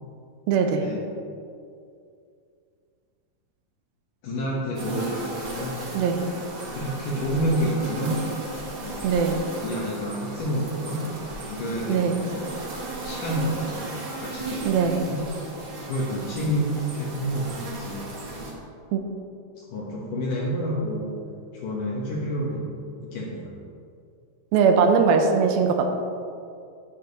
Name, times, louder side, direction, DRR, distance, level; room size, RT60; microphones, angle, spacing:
voice 1, 0.5-0.8 5.9-6.2 9.0-9.4 11.9-12.2 14.7-15.0 18.9-19.0 24.5-25.9, right 5 dB, 80° right, 4 dB, 2.6 m, -20 dB
voice 2, 4.2-5.8 6.7-8.3 8.8-9.1 9.6-11.0 11.5-12.5 13.0-13.9 14.2-15.2 15.9-18.1 19.6-21.2 21.5-22.7 23.0-23.5, equal, 65° left, -4 dB, 2.6 m, -29 dB
sound 1, 4.7-18.5, right 2 dB, 45° right, 1.6 m, -35 dB
10.5 x 8.8 x 4.1 m, 2.4 s
omnidirectional pair, 4.3 m